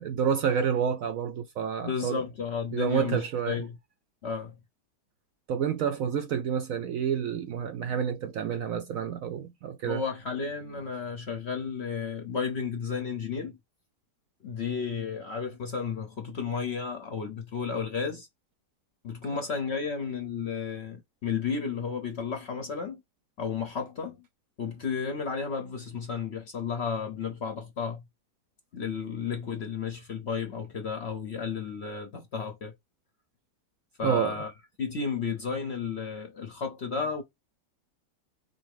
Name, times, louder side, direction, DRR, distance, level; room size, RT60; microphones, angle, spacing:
voice 1, 0.0-2.2 2.7-3.6 5.5-10.0 34.0-34.4, right 7 dB, 70° right, 0.8 m, -29 dB
voice 2, 1.8-3.8 4.2-4.5 9.9-13.6 14.4-18.3 19.0-23.0 23.4-24.2 24.6-28.0 28.7-32.7 34.0-34.5 34.8-37.2, left 5 dB, 55° left, 0.8 m, -33 dB
4.2 x 2.7 x 4.7 m
omnidirectional pair, 1.8 m